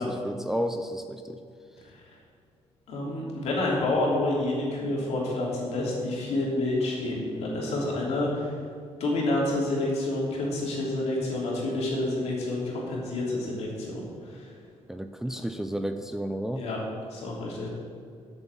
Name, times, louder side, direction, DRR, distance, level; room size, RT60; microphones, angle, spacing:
voice 1, 0.0-1.4 14.9-16.6, equal, 5° right, 7 dB, 0.4 m, -32 dB
voice 2, 2.9-8.6 9.0-14.5 16.5-16.8 17.1-17.7, left 2 dB, 70° left, -3 dB, 3.1 m, -29 dB
8.5 x 7.1 x 8.2 m, 2.3 s
cardioid pair, 160°, 11 cm